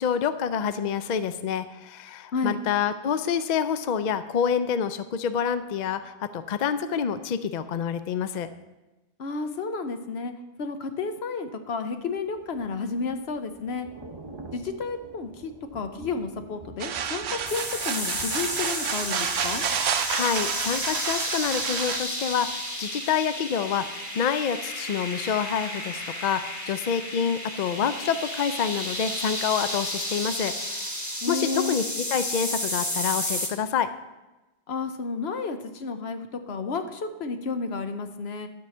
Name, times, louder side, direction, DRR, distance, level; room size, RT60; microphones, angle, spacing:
voice 1, 0.0-8.5 20.1-31.0 31.3-33.9, left 7 dB, 55° left, 12 dB, 0.6 m, -27 dB
voice 2, 9.2-10.3 10.6-13.9 14.5-19.6 31.2-31.8 34.7-38.5, left 4 dB, 80° left, 8 dB, 1.1 m, -31 dB
Thunder / Rain, 12.1-22.0 22.4-22.6, right 3 dB, 30° right, 0.7 m, -48 dB
sound 1, 16.8-22.0, right 7 dB, 90° right, 0.9 m, -30 dB
sound 2, 17.5-33.5, equal, 15° left, 1.5 m, -32 dB
11.5 x 4.6 x 7.0 m, 1.1 s
omnidirectional pair, 1.1 m